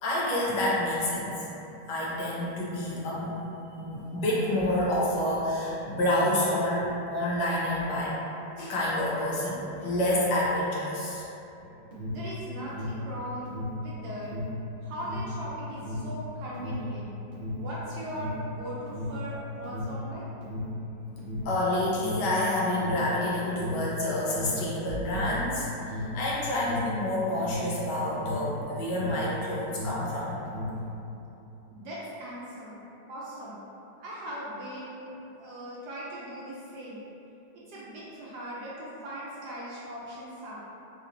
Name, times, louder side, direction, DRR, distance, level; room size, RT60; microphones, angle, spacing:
voice 1, 0.0-1.4 1.9-3.4 3.8-8.2 8.6-11.2 21.3-30.4, left 1 dB, 70° left, -6 dB, 1.2 m, -28 dB
Alarm, 11.7-29.4 29.6-30.9, left 2 dB, 50° right, 0.8 m, -35 dB
voice 2, 12.1-14.3 14.8-17.1 17.6-20.4 31.7-32.8 33.1-33.6 34.0-37.0 37.7-40.6, right 1 dB, 70° right, -7 dB, 1.0 m, -39 dB
4.0 x 2.7 x 2.5 m, 2.9 s
omnidirectional pair, 2.1 m